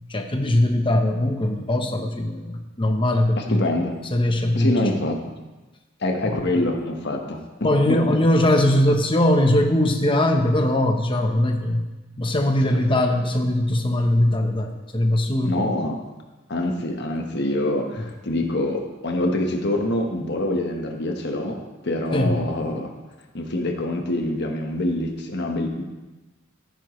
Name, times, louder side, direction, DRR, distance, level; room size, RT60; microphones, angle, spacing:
voice 1, 0.1-3.7 4.1-4.7 6.2-6.4 7.6-11.8 12.2-15.6 22.1-22.4, left 1 dB, 25° left, 4 dB, 1.0 m, -21 dB
voice 2, 3.4-3.9 4.5-5.3 6.0-8.2 12.6-12.8 15.4-16.0 16.5-22.9 23.3-25.8, left 1 dB, 55° left, 2 dB, 1.4 m, -25 dB
15.0 x 9.2 x 3.2 m, 1.2 s
head